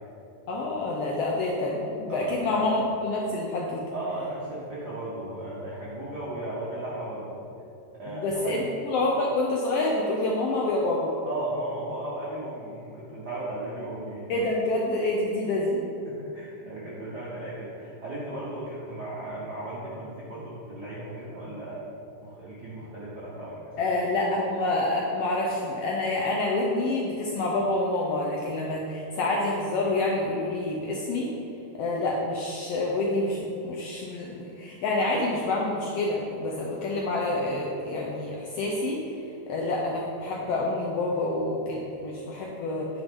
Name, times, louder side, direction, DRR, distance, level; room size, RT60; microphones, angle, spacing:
voice 1, 0.5-3.8 8.1-11.1 14.3-15.8 23.8-31.3 31.7-39.0 39.5-42.9, left 2 dB, 75° left, -2 dB, 1.4 m, -27 dB
voice 2, 2.1-2.6 3.9-7.4 7.9-8.6 11.2-14.3 16.0-21.8 22.2-23.9, right 2 dB, 65° right, -7 dB, 1.0 m, -36 dB
9.0 x 3.8 x 5.1 m, 2.8 s
omnidirectional pair, 3.4 m